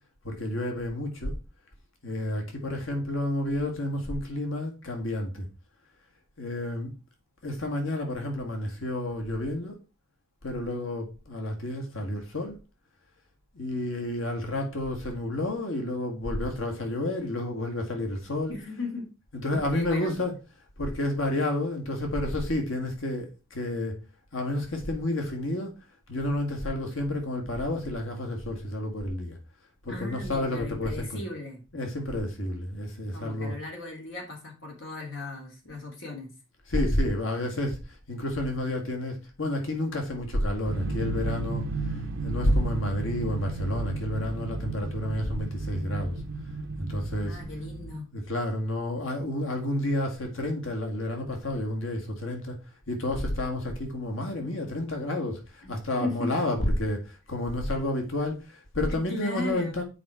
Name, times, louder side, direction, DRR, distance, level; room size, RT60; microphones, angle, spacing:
voice 1, 0.2-1.3 2.0-5.5 6.4-6.9 7.4-9.8 10.4-12.6 13.5-18.5 19.4-20.3 20.8-24.0 24.3-25.8 26.1-29.4 29.8-31.2 31.7-33.5 36.7-37.8 38.1-46.2 46.8-47.4 48.1-52.5 52.9-59.8, left 1 dB, 85° left, 1.8 m, -30 dB
voice 2, 18.5-19.1 19.5-20.2 29.9-31.6 33.1-36.3 47.3-48.1 55.6-55.7 56.0-56.3 58.9-59.8, left 2 dB, 70° left, 2.8 m, -36 dB
sound 1, 40.6-48.0, right 3 dB, 75° right, 0.7 m, -33 dB
7.5 x 5.0 x 4.5 m
head